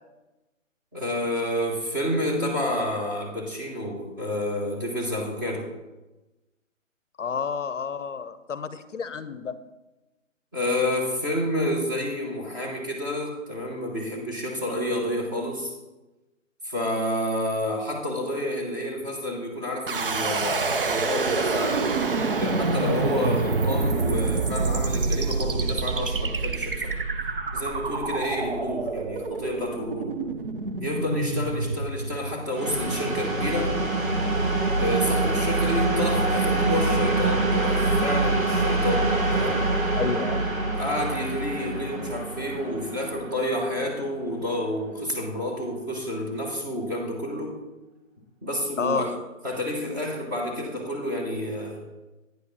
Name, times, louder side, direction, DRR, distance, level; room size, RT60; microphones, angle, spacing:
voice 1, 0.9-5.7 10.5-15.7 16.6-22.1 22.4-26.9 27.5-30.2 30.8-33.8 34.8-39.6 40.7-47.6 48.4-49.1 49.4-51.8, left 1 dB, 15° right, -2 dB, 1.0 m, -29 dB
voice 2, 7.2-9.6 40.0-40.7 48.8-49.1, left 6 dB, 65° left, 13 dB, 0.6 m, -30 dB
sound 1, 19.9-32.8, right 3 dB, 45° right, 0.6 m, -27 dB
sound 2, 32.5-44.2, right 2 dB, 85° right, 2.3 m, -25 dB
9.2 x 4.9 x 5.3 m, 1.1 s
figure-of-eight pair, 160°, 40 cm